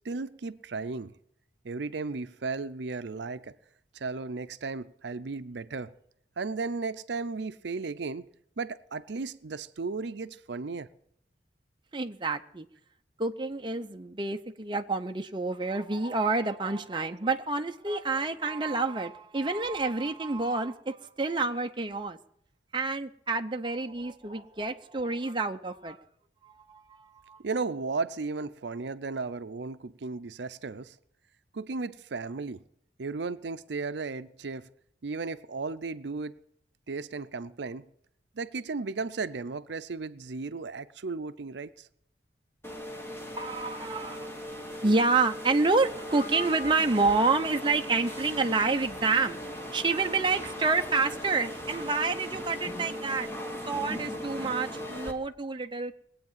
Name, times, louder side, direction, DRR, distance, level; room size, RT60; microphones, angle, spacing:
voice 1, 0.0-1.1 1.6-3.6 3.9-5.9 6.4-8.3 8.6-10.9 27.4-31.0 31.5-32.6 33.0-34.7 35.0-36.3 36.9-37.9 38.4-41.9, right 4 dB, 75° right, 0.6 m, -35 dB
voice 2, 11.9-12.7 13.2-22.2 22.7-26.0 26.4-27.4 43.4-44.4 44.8-53.3 53.7-55.9, right 3 dB, 25° right, 0.6 m, -28 dB
sound 1, 42.6-55.1, equal, 15° left, 1.5 m, -38 dB
20.5 x 8.6 x 7.3 m
head